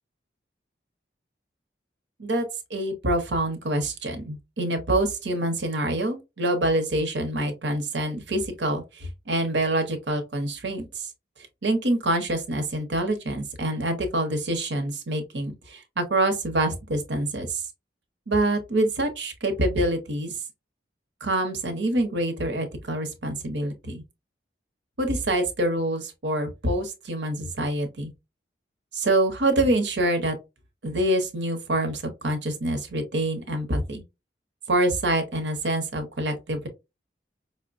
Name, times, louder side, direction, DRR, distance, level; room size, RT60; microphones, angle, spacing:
voice 1, 2.2-11.1 11.6-17.6 18.3-20.3 21.2-24.0 25.0-28.1 28.9-30.4 30.8-34.0 34.7-36.7, right 1 dB, 85° right, 0.8 m, -26 dB
5.1 x 2.1 x 2.5 m
head